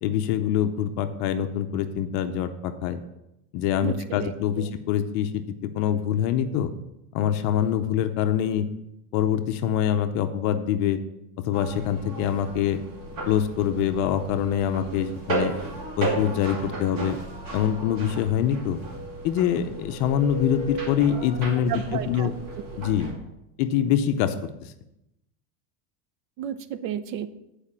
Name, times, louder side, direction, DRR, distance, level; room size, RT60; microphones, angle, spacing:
voice 1, 0.0-3.0 3.5-6.7 7.1-8.7 9.1-11.0 11.4-12.8 13.3-15.5 16.0-17.2 17.5-18.8 19.2-22.3 22.8-23.1 23.6-24.7, left 9 dB, 40° left, 8 dB, 0.6 m, -25 dB
voice 2, 4.2-4.7 21.7-22.3 26.4-27.3, right 9 dB, 60° right, 13 dB, 0.8 m, -32 dB
sound 1, 11.5-23.1, right 2 dB, 45° right, 2.4 m, -34 dB
8.4 x 4.9 x 7.3 m, 0.87 s
supercardioid pair, 155°, 45 cm